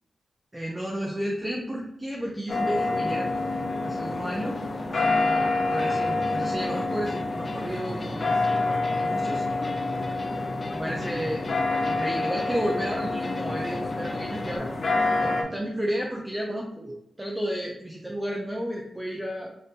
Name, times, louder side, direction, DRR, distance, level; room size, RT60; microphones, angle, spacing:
voice 1, 0.5-3.3 3.8-4.6 4.9-8.3 9.0-9.5 10.7-11.5 11.8-14.7 15.2-19.6, equal, 15° right, -1 dB, 0.6 m, -32 dB
sound 1, 2.5-15.4, left 2 dB, 55° left, 0.8 m, -27 dB
sound 2, 5.8-14.6, left 2 dB, 40° left, 0.4 m, -43 dB
5.3 x 2.6 x 2.7 m, 0.81 s
wide cardioid pair, 90°, 0 cm